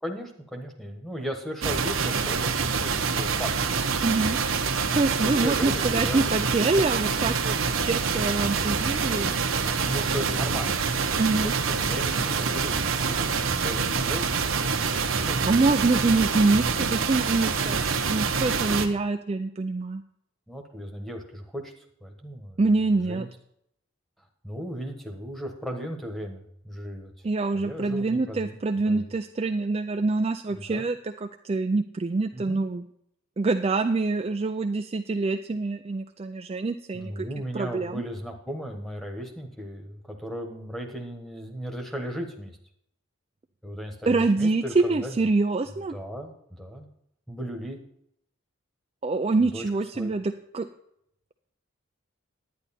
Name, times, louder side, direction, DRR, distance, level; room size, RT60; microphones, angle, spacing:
voice 1, 0.0-3.8 5.2-6.4 9.8-15.6 20.5-22.6 23.1-23.3 24.4-27.1 27.5-28.6 28.8-29.1 30.5-30.9 32.3-32.6 36.9-42.6 43.6-45.2 45.9-46.9 47.3-47.8 49.4-49.6 49.9-50.1, equal, ahead, 3 dB, 1.2 m, -36 dB
sound 1, 1.6-18.9, right 5 dB, 75° right, 1.0 m, -26 dB
voice 2, 4.0-4.4 4.9-9.3 11.2-11.5 15.5-20.0 22.6-23.3 27.2-32.8 33.4-37.3 37.5-38.0 44.1-46.0 49.0-50.7, right 3 dB, 30° right, 6 dB, 0.3 m, -25 dB
11.0 x 9.6 x 4.2 m, 0.75 s
head